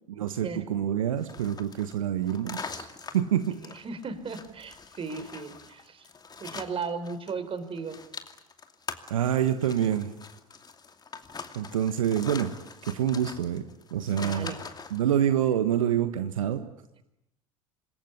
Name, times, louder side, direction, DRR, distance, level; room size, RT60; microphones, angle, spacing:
voice 1, 0.1-2.9 3.1-3.6 9.1-10.1 11.5-12.5 12.8-13.6 13.9-14.5 14.9-16.7, right 10 dB, 75° right, 9 dB, 1.4 m, -26 dB
sound 1, 1.2-7.3 7.6-15.0, left 5 dB, 25° left, 2.5 m, -43 dB
voice 2, 3.6-6.1 6.4-8.0 14.1-14.6, right 5 dB, 30° right, 11 dB, 4.3 m, -36 dB
26.5 x 21.5 x 9.9 m, 0.82 s
hypercardioid pair, 75°, 17 cm